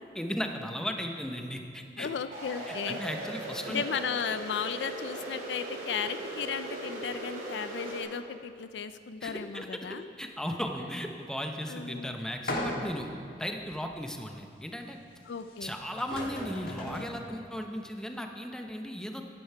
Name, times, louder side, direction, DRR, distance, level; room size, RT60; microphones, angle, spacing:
voice 1, 0.1-2.1 2.7-3.8 9.2-9.7 10.2-13.1 13.3-15.0 15.6-19.2, equal, 5° left, 4 dB, 0.7 m, -36 dB
voice 2, 2.0-3.0 3.7-10.1 11.7-12.2 15.3-15.8, left 6 dB, 75° left, 11 dB, 0.4 m, -35 dB
sound 1, 2.3-8.0, right 1 dB, 50° right, 2.8 m, -39 dB
sound 2, 12.5-13.1 13.7-13.8 15.6-15.7 16.0-17.2, left 1 dB, 60° left, 1.6 m, -35 dB
12.0 x 10.0 x 4.6 m, 2.3 s
head